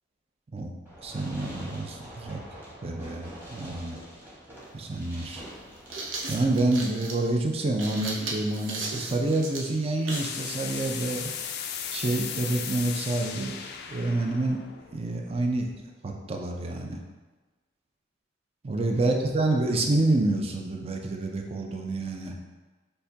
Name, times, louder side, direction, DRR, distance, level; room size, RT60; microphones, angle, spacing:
Fireworks, 0.9-6.9, equal, 10° right, 1.1 m, -45 dB
voice 1, 1.0-2.4 2.8-4.0 4.7-5.4 6.3-11.3 11.9-13.5 13.9-14.6 14.9-17.0 18.6-22.3, right 2 dB, 30° right, 2 dB, 0.4 m, -28 dB
sound 1, 4.5-4.6 5.6-10.4, right 2 dB, 85° right, 0.7 m, -36 dB
sound 2, 10.1-15.8, left 7 dB, 60° left, 0.3 m, -37 dB
6.5 x 2.2 x 2.7 m, 1.2 s
head